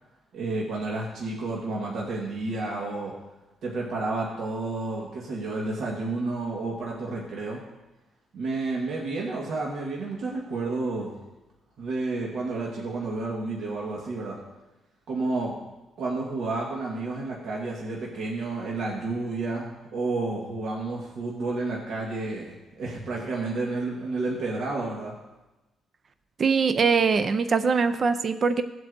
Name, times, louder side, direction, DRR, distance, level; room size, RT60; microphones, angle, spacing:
voice 1, 0.3-3.1 3.6-7.6 8.3-11.2 11.8-14.4 15.1-15.5 16.0-25.1, right 3 dB, 60° right, -2 dB, 1.5 m, -31 dB
voice 2, 26.4-28.6, right 5 dB, 35° right, 10 dB, 0.4 m, -22 dB
16.5 x 7.8 x 2.6 m, 1.0 s
cardioid pair, 150°, 0 cm